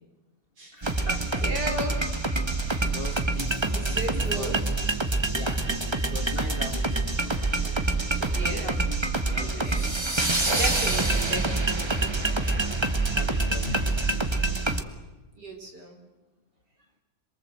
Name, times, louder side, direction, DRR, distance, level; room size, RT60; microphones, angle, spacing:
voice 1, 0.7-1.5 2.8-4.6 5.3-10.0 12.5-12.7 13.1-14.5, left 2 dB, 30° left, 4 dB, 2.3 m, -42 dB
sound 1, 0.8-14.8, right 2 dB, 15° right, 1.3 m, -26 dB
voice 2, 1.4-2.0 3.1-3.2 3.7-4.6 8.3-8.7 9.4-9.9 10.5-12.7 13.7-13.8 15.4-16.0, right 1 dB, 65° right, 2 dB, 5.5 m, -35 dB
27.0 x 23.0 x 7.9 m, 1.1 s
omnidirectional pair, 1.9 m